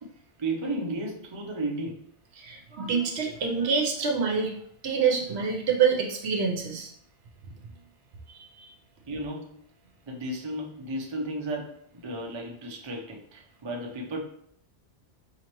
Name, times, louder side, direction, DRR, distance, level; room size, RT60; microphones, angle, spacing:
voice 1, 0.4-2.0 9.1-9.5 10.1-14.2, right 1 dB, 40° right, 0 dB, 0.4 m, -34 dB
voice 2, 2.4-4.5 4.8-6.9 8.3-8.7, right 6 dB, 65° right, 1 dB, 0.9 m, -26 dB
4.1 x 2.8 x 3.0 m, 0.67 s
omnidirectional pair, 1.2 m